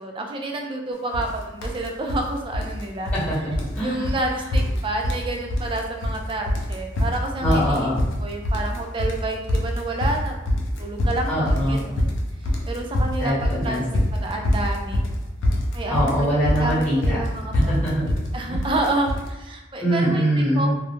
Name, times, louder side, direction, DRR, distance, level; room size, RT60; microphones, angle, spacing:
voice 1, 0.0-3.1 3.8-7.9 8.2-10.4 10.8-12.0 12.7-13.8 14.1-15.0 15.7-17.7 18.0-20.2 20.5-20.7, right 2 dB, 25° right, 2 dB, 0.3 m, -29 dB
sound 1, 1.1-1.3 1.6-2.2 2.5-3.3 3.5-3.8 4.0-4.2 4.5-5.3 5.5-6.2 6.5-19.3, left 1 dB, 80° left, 0.5 m, -24 dB
voice 2, 3.1-4.1 7.4-8.0 11.3-11.8 13.2-13.8 15.9-17.2 17.7-18.0 18.5-18.6 19.8-20.7, equal, 10° left, -10 dB, 1.1 m, -23 dB
2.3 x 2.1 x 2.9 m, 1.0 s
head